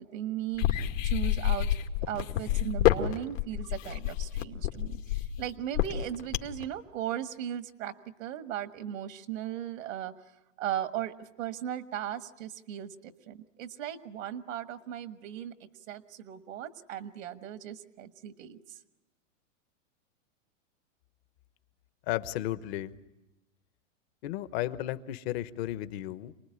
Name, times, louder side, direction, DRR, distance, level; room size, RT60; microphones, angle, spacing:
voice 1, 0.0-1.7 2.1-7.9 8.2-10.1 10.6-15.5 15.9-18.8, right 11 dB, 85° right, 10 dB, 1.5 m, -37 dB
sound 1, 0.5-6.6, left 13 dB, 80° left, 2.2 m, -28 dB
voice 2, 22.1-22.9 24.2-26.3, left 14 dB, 50° left, 13 dB, 1.2 m, -34 dB
27.5 x 20.0 x 9.8 m, 1.0 s
hypercardioid pair, 135°, 39 cm